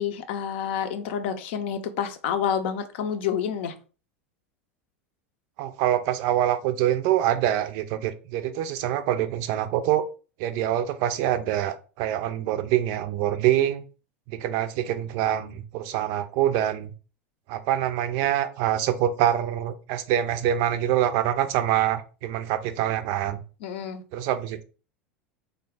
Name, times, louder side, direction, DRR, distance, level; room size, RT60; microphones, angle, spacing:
voice 1, 0.0-3.7 23.6-24.0, left 8 dB, 60° left, 0.6 m, -28 dB
voice 2, 5.6-10.0 10.4-13.8 14.3-16.9 17.5-23.4 24.1-24.6, right 11 dB, 50° right, 0.4 m, -25 dB
3.7 x 2.1 x 3.4 m
figure-of-eight pair, 80°, 7 cm